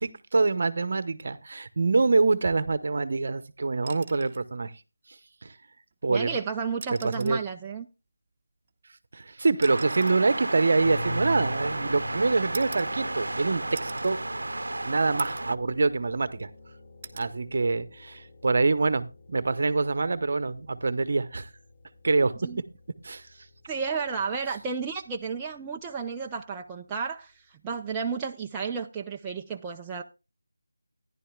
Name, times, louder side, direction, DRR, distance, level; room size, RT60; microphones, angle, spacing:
voice 1, 0.0-4.7 5.4-5.5 6.0-6.4 6.9-7.4 9.1-14.2 14.8-16.5 17.1-21.5 22.0-22.3 23.0-23.3, right 3 dB, 50° right, 0.9 m, -25 dB
sound 1, 3.8-4.5 5.9-6.0 6.7-7.5 8.6-11.7 12.5-13.4 13.7-14.2 14.6-14.7 15.2-15.6 16.0-16.6 17.0-17.3 18.8-19.0, right 5 dB, 25° right, 1.0 m, -44 dB
voice 2, 6.1-7.9 22.4-22.6 23.7-30.0, right 5 dB, 10° right, 0.4 m, -32 dB
sound 2, 9.6-15.6, right 2 dB, 75° right, 0.7 m, -33 dB
sound 3, 10.8-24.5, left 1 dB, 30° left, 3.3 m, -43 dB
14.0 x 11.0 x 2.3 m
figure-of-eight pair, 170°, 0 cm